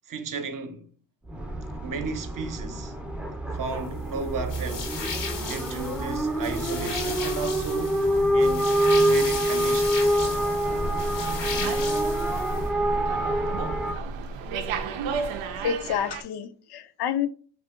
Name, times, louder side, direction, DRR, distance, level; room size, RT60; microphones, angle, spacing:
voice 1, 0.1-0.9 1.8-3.0 3.5-5.0 5.4-8.0 8.3-10.2, right 4 dB, 45° right, 0.7 m, -34 dB
sound 1, 1.3-13.9, right 1 dB, 5° right, 0.5 m, -26 dB
sound 2, 4.5-12.7, left 5 dB, 80° left, 1.0 m, -36 dB
Slam, 10.2-16.2, right 4 dB, 90° right, 0.5 m, -33 dB
voice 2, 15.6-17.3, left 8 dB, 60° left, 0.5 m, -28 dB
2.7 x 2.4 x 3.6 m
cardioid pair, 65°, 44 cm